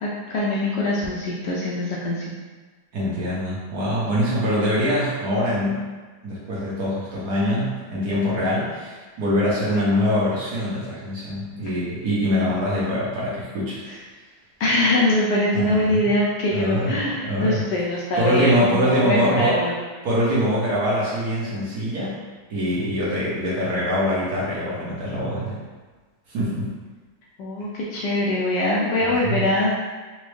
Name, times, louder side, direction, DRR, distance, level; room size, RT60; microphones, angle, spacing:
voice 1, 0.0-2.2 13.9-14.0 14.6-19.7 27.4-29.7, left 1 dB, 75° left, -5 dB, 1.1 m, -23 dB
voice 2, 2.9-5.8 6.2-13.8 15.5-16.1 16.5-17.6 18.2-19.6 20.0-22.2 22.5-25.6 26.3-26.7 29.2-29.4, equal, 60° right, -7 dB, 1.2 m, -23 dB
4.1 x 2.3 x 3.1 m, 1.4 s
omnidirectional pair, 2.2 m